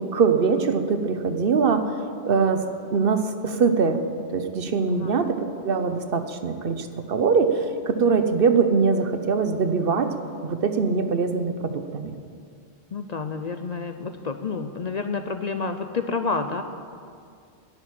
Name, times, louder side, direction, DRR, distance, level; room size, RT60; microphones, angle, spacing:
voice 1, 0.0-1.8 2.2-2.6 2.9-4.0 4.3-10.1 10.4-12.1, right 5 dB, 60° right, 8 dB, 1.0 m, -22 dB
voice 2, 12.9-16.6, left 4 dB, 45° left, 7 dB, 0.6 m, -29 dB
11.0 x 8.8 x 10.0 m, 2.3 s
omnidirectional pair, 1.1 m